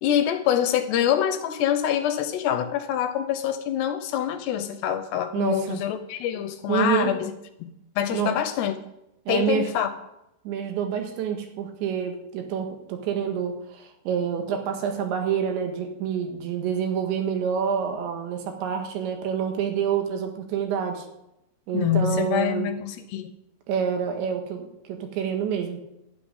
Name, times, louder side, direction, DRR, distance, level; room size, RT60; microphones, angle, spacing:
voice 1, 0.0-7.3 7.6-8.7 9.3-9.9 21.7-23.3, left 10 dB, 75° left, 9 dB, 2.8 m, -25 dB
voice 2, 5.3-5.8 6.7-7.1 8.1-8.3 9.3-9.7 10.5-21.1 21.7-22.7 23.7-25.8, right 7 dB, 75° right, 4 dB, 4.0 m, -27 dB
12.0 x 7.7 x 10.0 m, 0.85 s
omnidirectional pair, 5.3 m